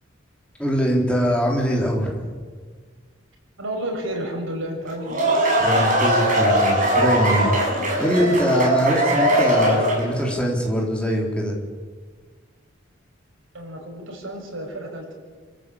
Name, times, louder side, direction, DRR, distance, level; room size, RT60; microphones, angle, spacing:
voice 1, 0.6-2.1 5.6-11.5, equal, 5° left, -2 dB, 4.3 m, -22 dB
voice 2, 3.6-5.3 13.5-15.1, right 1 dB, 85° right, 1 dB, 6.5 m, -31 dB
sound 1, 4.9-10.2, right 1 dB, 40° right, 6.8 m, -20 dB
29.0 x 14.5 x 8.9 m, 1.5 s
head